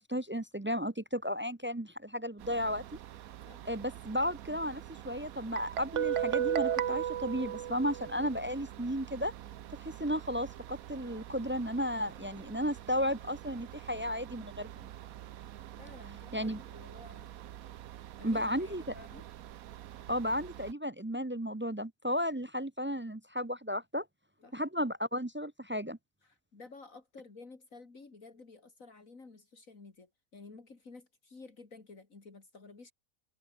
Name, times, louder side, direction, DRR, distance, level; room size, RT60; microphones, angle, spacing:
voice 1, 0.0-2.8 3.7-9.3 9.8-14.9 16.3-16.6 18.2-18.8 20.1-24.0 24.5-26.0, equal, 20° right, 0.3 m, -34 dB
sound 1, 2.4-20.7, right 12 dB, 85° right, 1.2 m, -48 dB
Guitar, 5.6-8.4, right 10 dB, 60° right, 1.1 m, -32 dB
voice 2, 15.8-17.3 18.2-19.3 24.4-24.6 26.2-32.9, left 3 dB, 70° left, 3.5 m, -53 dB
omnidirectional pair, 1.5 m